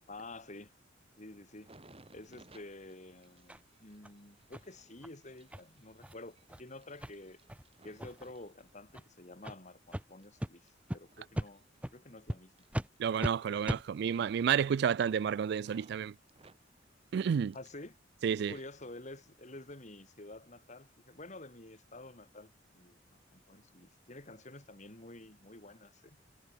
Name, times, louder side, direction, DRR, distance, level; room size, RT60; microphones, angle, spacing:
voice 1, 0.1-0.7 1.2-1.8 2.1-7.4 7.8-11.6 11.9-12.5 17.5-17.9 18.4-26.2, left 2 dB, 40° left, 3.1 m, -50 dB
sound 1, 1.5-9.1 9.6-12.2 12.4-13.2 13.5-16.0 16.3-17.9 18.1-18.9 19.4-19.6, right 2 dB, 30° right, 6.2 m, -63 dB
sound 2, 3.5-3.6 4.0-4.1 4.5-4.6 5.0-5.1 5.5-5.6 6.0-6.1 6.5-6.6 7.0-7.1 7.5-7.6 8.0-8.3 8.9-9.0 9.4-9.6 9.9-10.0 10.4-10.5 10.9-11.0 11.3-11.5 11.8-11.9 12.3-12.4 12.7-12.9 13.2-13.3 13.6-13.8, equal, 5° right, 1.2 m, -36 dB
voice 2, 13.0-16.1 17.1-17.5 18.2-18.5, right 7 dB, 60° right, 0.3 m, -30 dB
head